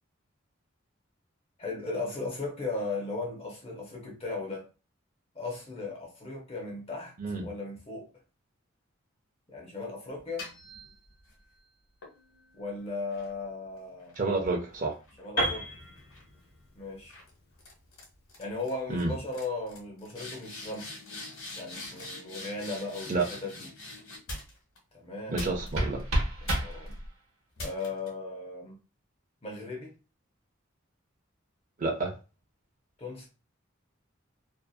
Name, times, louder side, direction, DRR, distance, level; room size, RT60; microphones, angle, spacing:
voice 1, 1.6-4.7 5.3-7.1 7.4-8.1 9.5-10.5 12.5-14.2 15.2-15.7 16.8-17.2 18.4-21.0 21.6-23.7 24.9-25.5 26.4-27.0 27.6-28.8 29.4-29.9 33.0-33.3, left 3 dB, 30° left, 0 dB, 0.6 m, -37 dB
sound 1, 10.2-11.4 12.0-15.6 16.0-16.4 17.1-17.3 17.6-18.0 18.3-18.7 19.0-19.1 19.3-24.8 25.4-26.0 26.5-26.9 27.6-28.1, left 2 dB, 85° left, 1.1 m, -44 dB
voice 2, 14.2-15.0 18.9-19.1 23.1-23.2 25.3-26.0 31.8-32.1, right 3 dB, 40° right, 1 dB, 0.5 m, -29 dB
Piano, 15.4-19.3, right 1 dB, 50° left, 1.1 m, -35 dB
sound 2, 25.3-27.3, right 1 dB, 90° right, 0.8 m, -31 dB
2.6 x 2.3 x 2.3 m, 0.31 s
head